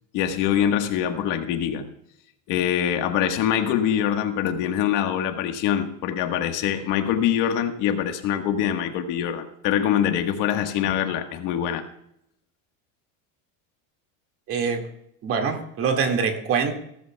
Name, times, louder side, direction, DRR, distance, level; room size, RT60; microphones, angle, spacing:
voice 1, 0.1-1.9 2.5-11.8, left 9 dB, 55° left, 1.5 m, -24 dB
voice 2, 14.5-14.9 15.2-16.7, right 5 dB, 40° right, 2.1 m, -24 dB
16.0 x 14.0 x 2.3 m
cardioid pair, 150°, 37 cm